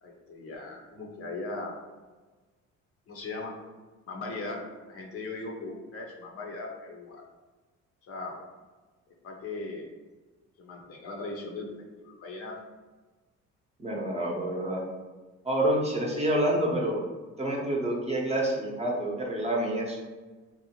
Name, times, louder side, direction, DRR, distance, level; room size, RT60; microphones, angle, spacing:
voice 1, 0.0-1.7 3.1-3.5 4.1-7.2 8.0-8.4 9.2-9.9 10.6-11.7 12.0-12.6, left 3 dB, 50° left, 1 dB, 0.6 m, -38 dB
voice 2, 13.8-14.8 15.4-17.0 17.4-20.0, right 1 dB, 20° right, -2 dB, 0.7 m, -28 dB
2.7 x 2.0 x 2.8 m, 1.3 s
supercardioid pair, 80°, 30 cm